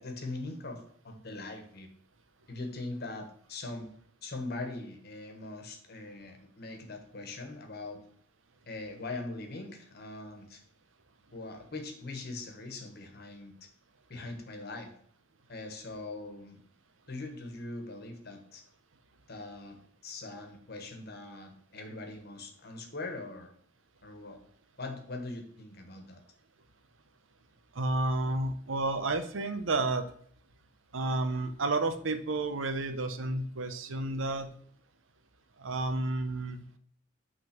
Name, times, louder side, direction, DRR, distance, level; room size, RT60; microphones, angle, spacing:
voice 1, 0.0-1.9 2.5-3.9 4.2-8.0 8.7-10.6 11.3-13.5 14.1-14.9 15.5-16.6 17.1-18.6 19.3-19.8 20.0-23.5 24.0-24.4 24.8-26.2, left 2 dB, 55° left, 5 dB, 1.3 m, -41 dB
voice 2, 27.7-30.0 30.9-34.5 35.6-36.6, right 2 dB, 85° right, 9 dB, 0.8 m, -31 dB
6.0 x 3.7 x 5.9 m, 0.62 s
head